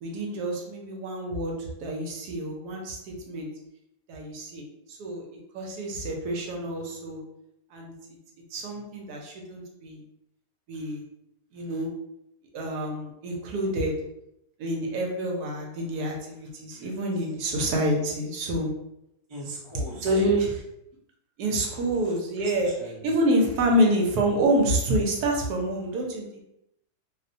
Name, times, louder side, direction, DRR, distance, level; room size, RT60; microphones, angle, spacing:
voice 1, 0.0-3.5 4.1-5.3 5.5-7.2 7.7-7.9 8.5-10.0 10.7-11.0 11.5-11.9 12.5-13.9 14.6-18.7 19.9-20.6 21.4-22.7 23.0-26.4, right 1 dB, 75° right, 0 dB, 1.1 m, -27 dB
voice 2, 19.3-20.4 21.5-22.0 22.4-23.1, right 1 dB, 40° right, -5 dB, 0.3 m, -41 dB
2.8 x 2.0 x 2.5 m, 0.81 s
omnidirectional pair, 1.8 m